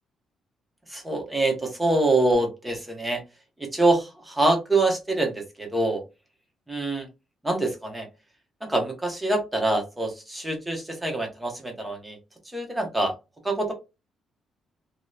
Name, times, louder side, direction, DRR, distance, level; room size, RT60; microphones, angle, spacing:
voice 1, 0.9-3.2 3.6-6.0 6.7-7.1 7.4-8.1 8.6-12.2 12.5-13.1 13.4-13.7, right 2 dB, 10° right, 2 dB, 0.8 m, -25 dB
2.7 x 2.0 x 2.3 m, 0.26 s
cardioid pair, 90°, 0 cm